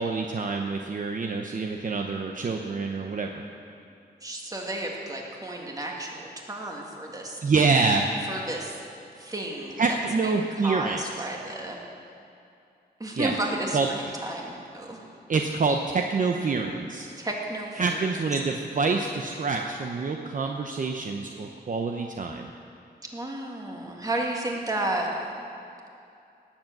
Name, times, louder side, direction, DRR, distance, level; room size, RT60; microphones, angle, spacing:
voice 1, 0.0-3.4 7.4-8.1 9.8-11.0 13.2-13.3 13.7-13.9 15.3-17.1 17.8-22.5, right 4 dB, 50° right, 3 dB, 0.8 m, -26 dB
voice 2, 4.2-7.4 8.3-8.8 9.2-11.8 13.0-15.1 17.2-18.2 23.1-25.1, right 1 dB, 20° right, -1 dB, 1.9 m, -33 dB
18.5 x 7.4 x 7.7 m, 2.6 s
wide cardioid pair, 145°, 17 cm